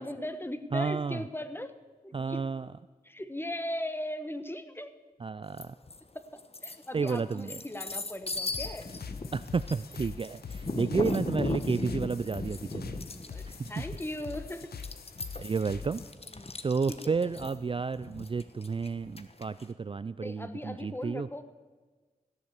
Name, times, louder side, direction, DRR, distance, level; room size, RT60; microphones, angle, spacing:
voice 1, 0.0-1.7 2.0-2.4 3.0-5.0 6.3-8.9 13.1-14.7 16.3-16.5 16.9-17.3 20.2-21.4, left 1 dB, 15° left, 10 dB, 1.2 m, -38 dB
voice 2, 0.7-1.2 2.1-2.7 5.2-5.7 6.9-7.6 9.3-13.0 13.5-13.8 15.4-16.0 16.6-21.3, right 5 dB, 35° right, 15 dB, 0.3 m, -31 dB
sound 1, 5.6-6.0 6.4-19.6, left 3 dB, 40° left, 1.0 m, -37 dB
sound 2, 8.5-16.1, left 6 dB, 85° left, 0.8 m, -43 dB
16.0 x 7.2 x 8.1 m, 1.3 s
cardioid pair, 40°, 16 cm